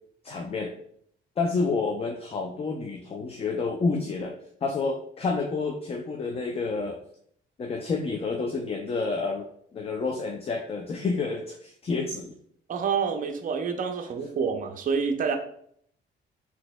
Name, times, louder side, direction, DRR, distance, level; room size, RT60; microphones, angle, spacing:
voice 1, 0.2-0.7 1.4-4.3 4.6-7.0 7.6-9.5 9.7-12.3, left 4 dB, 30° left, 3 dB, 0.4 m, -29 dB
voice 2, 12.7-15.4, right 6 dB, 45° right, 5 dB, 0.5 m, -27 dB
4.0 x 2.8 x 2.2 m, 0.66 s
cardioid pair, 90°, 20 cm